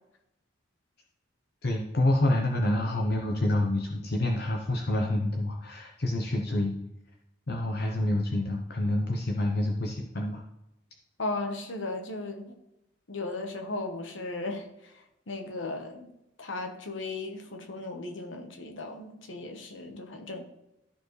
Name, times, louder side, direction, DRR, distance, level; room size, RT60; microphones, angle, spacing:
voice 1, 1.6-6.8 7.5-10.4, left 1 dB, 50° left, 1 dB, 0.7 m, -27 dB
voice 2, 11.2-12.5 13.1-14.9 15.3-16.1 16.4-20.4, left 2 dB, 70° left, 4 dB, 1.1 m, -36 dB
13.0 x 4.7 x 3.2 m, 0.88 s
head